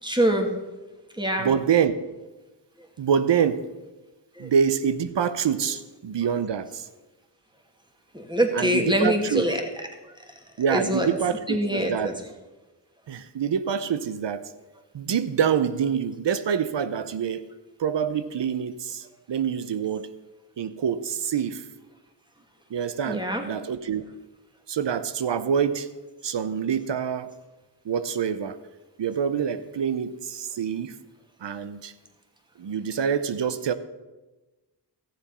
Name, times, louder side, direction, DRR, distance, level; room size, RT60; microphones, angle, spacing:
voice 1, 0.0-0.6 1.1-1.5 2.8-2.9 4.3-4.5 5.6-5.7 8.1-9.6 10.0-10.4 10.7-11.1 11.5-12.2 23.0-23.4, equal, 10° right, 3 dB, 2.0 m, -25 dB
voice 2, 1.4-2.0 3.0-3.7 4.4-6.9 8.5-9.4 10.6-12.2 13.1-14.5 14.9-17.5 17.8-20.1 20.6-21.6 22.7-24.1 24.7-25.9 26.2-27.3 27.8-28.6 29.0-30.9 31.4-31.9 32.6-33.7, right 7 dB, 85° right, 13 dB, 0.7 m, -26 dB
14.0 x 7.2 x 5.4 m, 1.1 s
cardioid pair, 50°, 42 cm